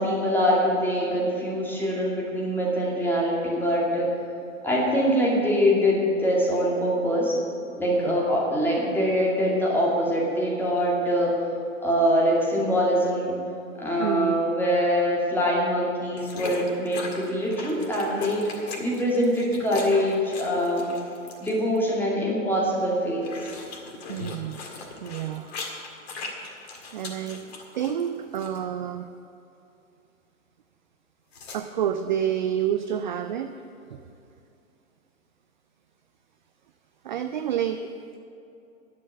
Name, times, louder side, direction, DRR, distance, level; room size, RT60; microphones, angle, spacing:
voice 1, 0.0-4.1 4.6-7.4 7.8-11.5 11.8-13.4 13.8-18.4 18.8-20.9 21.4-23.2, equal, 5° left, -4 dB, 2.4 m, -24 dB
voice 2, 14.0-14.4 24.1-24.6 25.0-25.5 26.9-29.1 31.5-33.5 33.9-34.0 37.0-38.2, right 9 dB, 35° right, 8 dB, 0.4 m, -29 dB
sound 1, 16.2-21.8 22.8-28.1 28.4-28.6 31.3-31.6, left 3 dB, 50° left, 2.0 m, -38 dB
10.5 x 7.4 x 8.7 m, 2.7 s
figure-of-eight pair, 110°, 41 cm